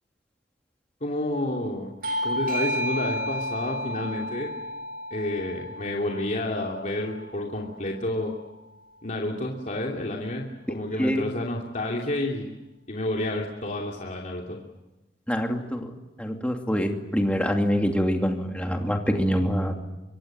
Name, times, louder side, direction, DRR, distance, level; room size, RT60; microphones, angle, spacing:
voice 1, 1.0-1.9 2.2-4.5 5.1-8.3 9.0-12.5 12.9-14.6, left 1 dB, 45° left, -1 dB, 2.8 m, -30 dB
Bell / Doorbell, 2.0-7.2, equal, 55° right, 6.7 m, -32 dB
voice 2, 15.3-15.9 16.2-19.8, equal, 5° left, 3 dB, 2.7 m, -25 dB
24.5 x 24.0 x 9.0 m, 1.0 s
head